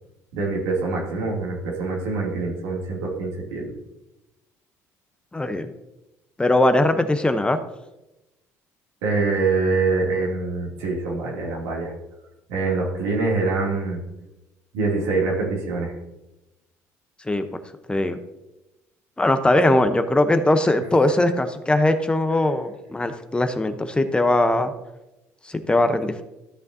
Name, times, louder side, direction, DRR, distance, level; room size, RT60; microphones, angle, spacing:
voice 1, 0.3-3.7 9.0-11.9 12.5-14.0 14.7-15.9, right 3 dB, 85° right, -3 dB, 2.7 m, -24 dB
voice 2, 5.3-5.7 6.4-7.6 17.3-17.5 17.9-18.2 19.2-24.7 25.5-26.2, left 1 dB, 15° left, 9 dB, 0.8 m, -20 dB
13.5 x 6.5 x 2.8 m, 0.96 s
supercardioid pair, 75°, 7 cm